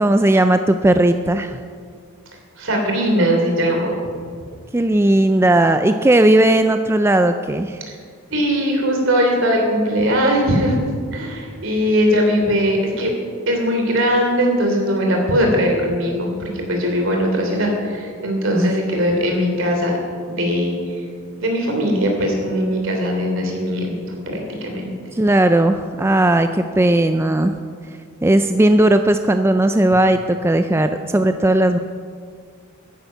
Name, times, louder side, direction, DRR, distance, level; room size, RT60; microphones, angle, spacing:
voice 1, 0.0-1.6 4.7-7.8 18.5-18.7 25.1-27.5 28.2-31.8, right 1 dB, 10° right, 8 dB, 0.3 m, -16 dB
voice 2, 2.6-3.9 8.3-10.7 11.1-13.1 13.5-20.0 20.3-20.7 21.4-24.0 24.3-24.9, equal, 65° right, 2 dB, 3.2 m, -20 dB
14.5 x 10.5 x 5.8 m, 2.1 s
head